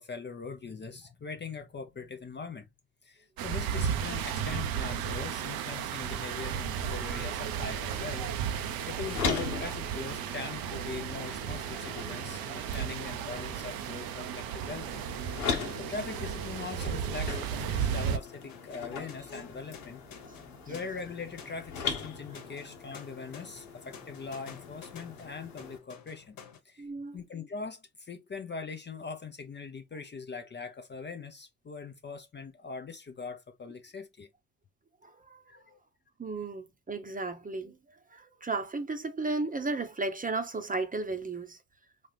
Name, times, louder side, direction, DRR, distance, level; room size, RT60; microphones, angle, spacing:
voice 1, 0.0-2.7 3.0-8.3 8.9-15.0 15.5-20.0 20.7-26.4 26.6-26.9 27.1-34.3 35.5-35.8, left 4 dB, 25° left, 0.7 m, -41 dB
sound 1, 3.4-18.2, right 8 dB, 55° right, 0.7 m, -34 dB
sound 2, 7.7-25.8, left 5 dB, 85° left, 1.0 m, -40 dB
sound 3, 16.8-17.3 18.1-26.6, left 7 dB, 50° left, 1.2 m, -51 dB
voice 2, 26.8-27.2 35.0-35.4 36.2-37.8 38.1-41.6, right 3 dB, 20° right, 0.9 m, -34 dB
4.2 x 2.5 x 3.3 m
hypercardioid pair, 55°, 42 cm